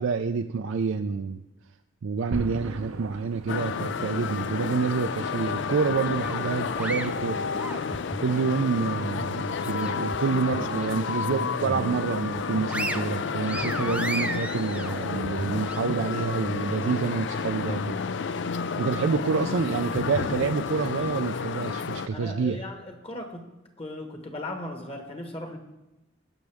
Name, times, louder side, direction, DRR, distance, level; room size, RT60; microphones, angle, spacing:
voice 1, 0.0-1.4 2.0-7.4 8.2-18.0 18.8-22.6, right 5 dB, 65° right, 7 dB, 0.4 m, -28 dB
sound 1, 2.3-12.6, right 2 dB, 85° right, 0.8 m, -42 dB
sound 2, 3.5-22.1, left 5 dB, 55° left, 0.4 m, -31 dB
sound 3, 6.2-8.3 8.7-10.2 10.5-10.7 11.1-11.9 12.3-15.8, right 1 dB, 5° right, 0.4 m, -35 dB
voice 2, 22.1-23.5 23.8-25.6, left 1 dB, 25° left, 4 dB, 1.3 m, -37 dB
18.0 x 6.3 x 3.5 m, 1.0 s
head